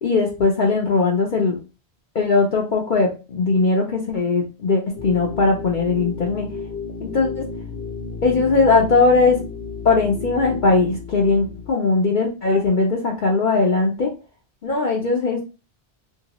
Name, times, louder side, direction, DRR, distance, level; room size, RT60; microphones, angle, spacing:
voice 1, 0.0-1.6 2.1-6.5 7.0-7.4 8.2-9.4 9.8-14.1 14.6-15.4, left 3 dB, 55° left, -1 dB, 0.7 m, -19 dB
sound 1, 4.9-11.7, left 4 dB, 90° left, 1.0 m, -33 dB
2.9 x 2.7 x 2.9 m, 0.31 s
omnidirectional pair, 1.1 m